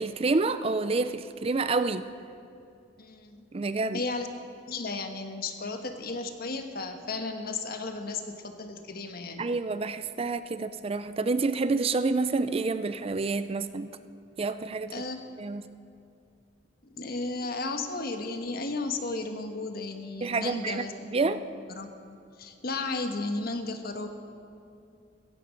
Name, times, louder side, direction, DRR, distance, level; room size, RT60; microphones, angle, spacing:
voice 1, 0.0-2.1 3.5-4.0 9.4-13.9 14.4-14.9 15.4-15.7 20.2-21.4, right 3 dB, 30° right, 12 dB, 0.4 m, -28 dB
voice 2, 3.0-3.4 3.9-4.3 4.7-9.5 14.9-15.5 16.9-20.9 21.2-21.4 21.7-24.1, left 3 dB, 55° left, 6 dB, 1.3 m, -34 dB
16.0 x 16.0 x 5.2 m, 2.6 s
head